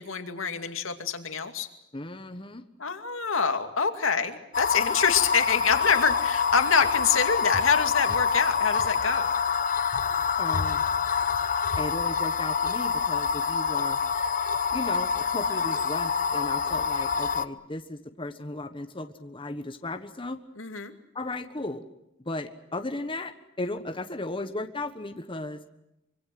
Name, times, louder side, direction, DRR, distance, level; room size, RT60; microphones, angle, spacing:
voice 1, 0.0-1.7 2.8-9.3 20.6-20.9, left 6 dB, 85° left, 7 dB, 2.4 m, -26 dB
voice 2, 1.9-2.6 10.4-10.9 11.8-14.0 14.7-20.4 21.1-21.8 22.2-23.3 23.6-25.6, left 2 dB, 25° left, 7 dB, 1.3 m, -35 dB
sound 1, 4.5-17.4, left 6 dB, 40° left, 1.0 m, -26 dB
25.0 x 24.5 x 7.8 m, 0.84 s
head